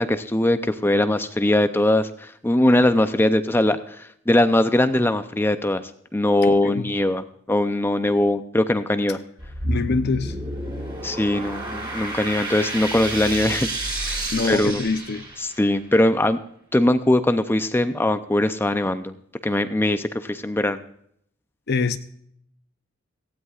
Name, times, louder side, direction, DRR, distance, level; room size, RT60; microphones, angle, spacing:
voice 1, 0.0-5.8 6.1-9.2 11.0-13.7 14.0-14.8 15.4-16.4 16.7-19.1 19.4-20.8, left 1 dB, 10° left, 10 dB, 0.5 m, -21 dB
voice 2, 6.4-6.9 9.6-10.4 14.3-15.2 21.7-22.0, left 4 dB, 55° left, 10 dB, 0.7 m, -25 dB
sound 1, 9.4-15.7, right 1 dB, 20° right, 4.2 m, -30 dB
17.5 x 15.5 x 2.4 m, 0.68 s
head